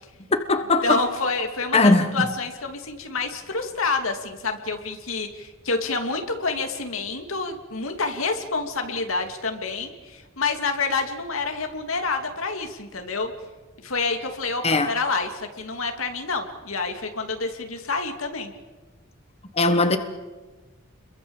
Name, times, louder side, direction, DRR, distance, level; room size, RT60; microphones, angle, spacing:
voice 1, 0.3-1.0 1.7-2.1 14.6-14.9 19.6-20.0, left 2 dB, 30° left, 1.3 m, -19 dB
voice 2, 0.8-13.3 13.8-18.5, left 3 dB, 75° left, 2.7 m, -28 dB
29.5 x 22.5 x 7.3 m
head